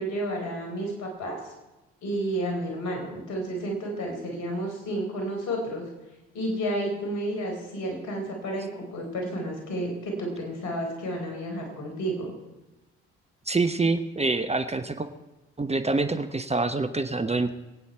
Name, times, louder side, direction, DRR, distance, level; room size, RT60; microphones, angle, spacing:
voice 1, 0.0-1.4 2.0-5.9 6.3-12.3, right 1 dB, 65° left, 2 dB, 4.7 m, -31 dB
voice 2, 13.5-15.1 15.6-17.5, right 3 dB, 20° right, 9 dB, 1.1 m, -26 dB
23.5 x 9.2 x 4.6 m, 1.1 s
hypercardioid pair, 45°, 32 cm